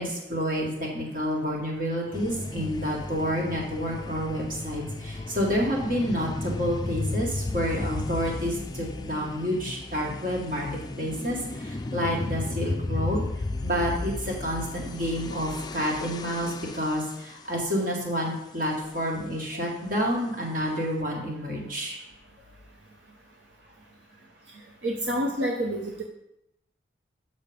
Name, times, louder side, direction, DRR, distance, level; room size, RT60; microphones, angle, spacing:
voice 1, 0.0-10.7 11.0-13.2 13.6-22.0, equal, 50° right, -2 dB, 2.0 m, -29 dB
sound 1, 2.1-17.4, left 2 dB, 20° left, 0.3 m, -34 dB
voice 2, 24.8-26.0, equal, 85° right, 0 dB, 0.9 m, -28 dB
6.7 x 6.5 x 5.2 m, 0.85 s
head